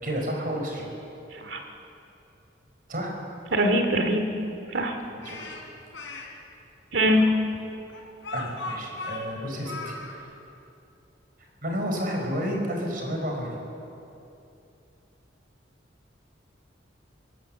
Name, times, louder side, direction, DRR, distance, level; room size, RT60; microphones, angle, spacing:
voice 1, 0.0-0.9 2.9-3.1 5.1-5.5 8.3-9.9 11.6-13.6, equal, 50° right, 1 dB, 4.8 m, -31 dB
voice 2, 3.5-4.2 4.7-5.0 6.9-7.2, equal, 70° right, 5 dB, 2.5 m, -22 dB
Speech, 5.2-6.3 7.1-10.2, left 3 dB, 90° left, 3.9 m, -37 dB
25.0 x 17.5 x 7.6 m, 2.7 s
head